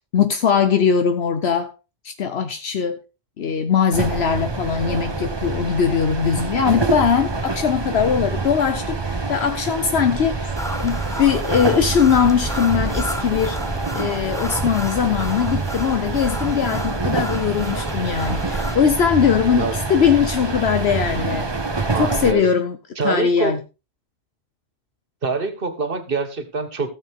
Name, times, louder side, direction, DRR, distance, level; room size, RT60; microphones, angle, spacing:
voice 1, 0.1-1.7 2.0-3.0 3.4-9.0 9.3-10.5 10.8-13.6 13.9-21.5 21.9-22.8 23.0-23.6, left 7 dB, 75° left, 8 dB, 1.1 m, -20 dB
sound 1, 3.9-22.3, right 3 dB, 25° right, 0.9 m, -26 dB
sound 2, 10.6-18.8, equal, 5° left, 0.8 m, -31 dB
voice 2, 21.9-22.5 23.0-23.5 25.2-26.9, right 4 dB, 55° right, 9 dB, 1.7 m, -25 dB
16.0 x 7.2 x 3.6 m, 0.30 s
omnidirectional pair, 1.1 m